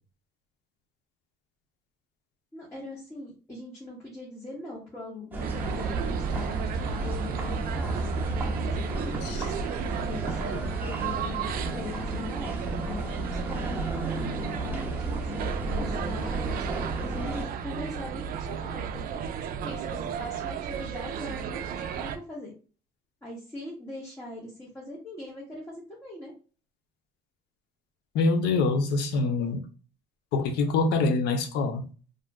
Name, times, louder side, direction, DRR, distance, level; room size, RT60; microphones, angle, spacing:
voice 1, 2.5-5.4 5.7-9.2 9.9-11.4 11.7-19.2 19.6-22.5 23.2-26.3, left 2 dB, 15° left, 1.1 m, -42 dB
sound 1, 5.3-17.5, right 2 dB, 10° right, 0.9 m, -33 dB
sound 2, 5.4-22.2, right 7 dB, 60° right, 0.4 m, -34 dB
voice 2, 28.1-29.7 30.3-31.9, left 3 dB, 80° left, 0.6 m, -25 dB
2.5 x 2.2 x 3.4 m
cardioid pair, 110°, 17 cm